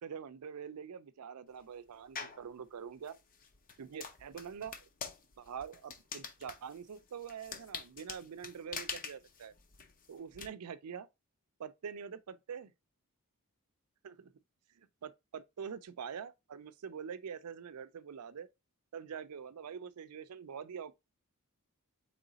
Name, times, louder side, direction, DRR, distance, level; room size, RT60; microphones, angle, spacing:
voice 1, 0.0-3.1 3.8-4.9 5.4-9.5 10.1-11.1 11.6-12.7 14.0-14.3 14.8-18.5 18.9-20.9, right 7 dB, 85° right, 0.4 m, -45 dB
sound 1, 2.1-2.5 3.0-10.5, left 5 dB, 40° left, 0.6 m, -45 dB
4.0 x 3.1 x 3.9 m
head